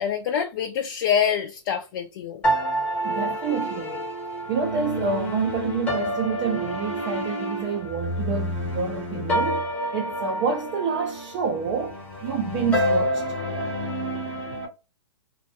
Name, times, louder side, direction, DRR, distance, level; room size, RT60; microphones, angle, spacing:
voice 1, 0.0-2.4, left 8 dB, 45° left, 0.4 m, -25 dB
sound 1, 2.4-14.7, equal, 10° left, 0.8 m, -28 dB
voice 2, 3.0-4.1 4.5-9.6 9.9-11.9 12.2-13.2, right 5 dB, 30° right, 0.4 m, -28 dB
2.5 x 2.2 x 2.7 m
hypercardioid pair, 140°, 16 cm